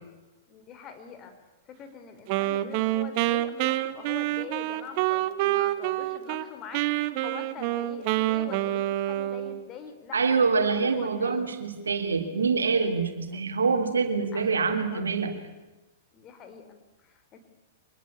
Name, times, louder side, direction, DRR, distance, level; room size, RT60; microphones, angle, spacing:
voice 1, 0.5-1.4 1.6-11.5 13.3-13.5 14.3-15.0 16.1-17.4, left 7 dB, 30° left, 8 dB, 4.5 m, -44 dB
Wind instrument woodwind instrument, 2.3-6.5 6.7-9.7, right 15 dB, 50° right, 1.4 m, -27 dB
voice 2, 10.1-15.3, right 4 dB, 85° right, 6 dB, 3.2 m, -25 dB
25.5 x 21.0 x 8.6 m, 1.1 s
hypercardioid pair, 110°, 0 cm